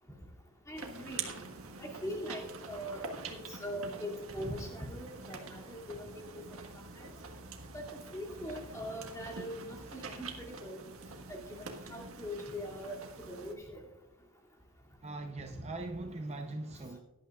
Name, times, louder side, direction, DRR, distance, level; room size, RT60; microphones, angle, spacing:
voice 1, 0.7-1.2 1.8-3.0 3.3-6.4 7.0-7.1 7.7-7.8 8.1-10.8 11.3-13.0 13.3-13.8, equal, 15° left, 2.5 m, -41 dB
sound 1, 0.8-13.5, right 4 dB, 70° right, 1.6 m, -46 dB
voice 2, 15.0-17.0, right 2 dB, 30° right, 0.7 m, -41 dB
17.5 x 11.5 x 2.4 m
head